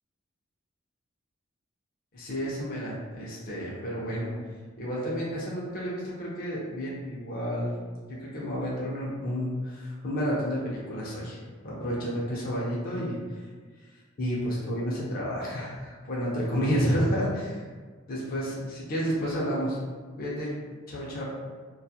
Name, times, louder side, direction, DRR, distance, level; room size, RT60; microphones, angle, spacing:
voice 1, 2.1-4.3 4.8-7.8 8.1-13.2 14.2-17.6 18.1-19.8 20.2-20.5 20.9-21.2, equal, 45° left, -6 dB, 0.5 m, -30 dB
2.2 x 2.0 x 2.7 m, 1.5 s
head